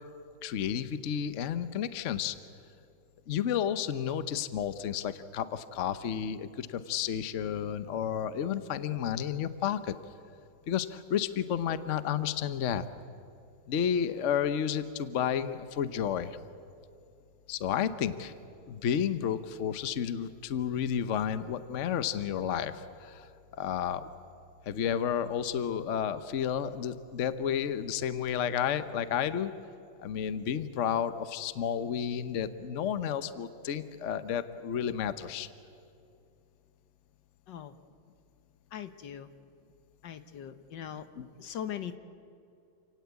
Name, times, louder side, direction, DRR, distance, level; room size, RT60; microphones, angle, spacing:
voice 1, 0.4-2.4 3.3-9.9 10.7-12.9 13.7-16.4 17.5-18.3 18.7-23.3 23.6-24.1 24.7-29.5 30.0-35.5 41.2-41.3, left 8 dB, 50° left, 11 dB, 1.0 m, -31 dB
voice 2, 38.7-39.3 40.0-41.0 41.4-42.0, left 9 dB, 75° left, 10 dB, 1.7 m, -40 dB
28.5 x 17.5 x 8.2 m, 2.6 s
omnidirectional pair, 2.0 m